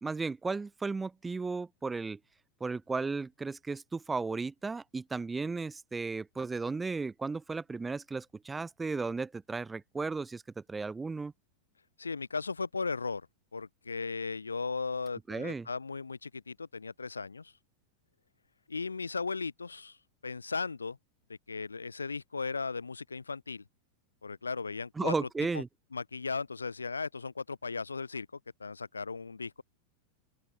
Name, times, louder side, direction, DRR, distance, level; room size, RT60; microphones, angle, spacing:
voice 1, 0.0-2.2 2.6-11.3 15.3-15.7 25.0-25.7, right 4 dB, 10° right, 0.4 m, -35 dB
voice 2, 12.0-13.3 13.5-17.5 18.7-20.0 20.2-21.0 21.3-23.6 24.2-25.3 25.5-25.6 25.9-28.3 28.6-29.6, left 4 dB, 75° left, 0.5 m, -36 dB
open air
figure-of-eight pair, 90°, 0 cm